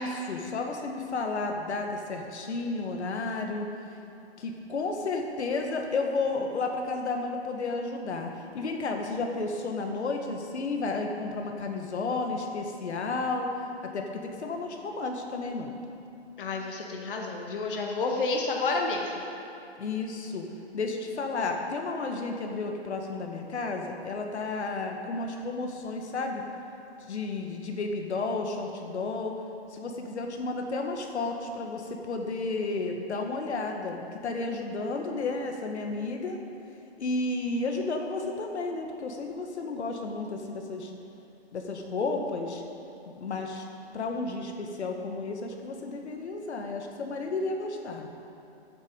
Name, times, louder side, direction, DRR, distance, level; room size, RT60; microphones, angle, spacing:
voice 1, 0.0-3.7 4.4-13.5 13.8-15.7 19.8-20.4 20.7-26.4 27.0-29.3 29.7-36.4 37.0-40.9 41.5-42.6 43.0-43.6 43.9-48.1, left 3 dB, 85° left, 3 dB, 1.7 m, -32 dB
voice 2, 16.4-19.3, left 3 dB, 50° left, 1 dB, 1.5 m, -30 dB
14.5 x 8.2 x 5.3 m, 2.9 s
hypercardioid pair, 175°, 33 cm